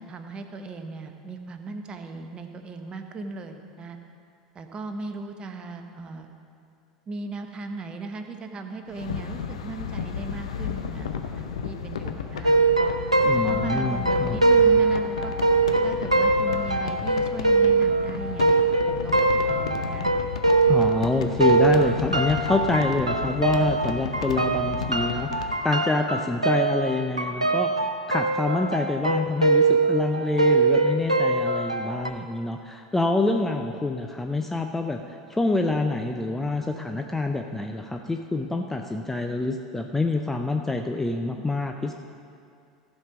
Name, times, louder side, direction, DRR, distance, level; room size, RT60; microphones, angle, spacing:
voice 1, 0.0-4.0 4.5-6.3 7.1-13.0 13.4-15.3 15.8-20.1, right 3 dB, 30° right, 6 dB, 1.0 m, -37 dB
sound 1, 8.9-25.6, left 7 dB, 70° left, 0.7 m, -33 dB
sound 2, 12.4-21.1 21.4-32.1, right 3 dB, 90° right, 0.6 m, -22 dB
voice 2, 13.3-14.4 20.7-27.7 28.1-35.0 35.3-41.9, left 2 dB, 10° left, 4 dB, 0.5 m, -26 dB
14.5 x 5.3 x 6.0 m, 2.4 s
figure-of-eight pair, 80°, 3 cm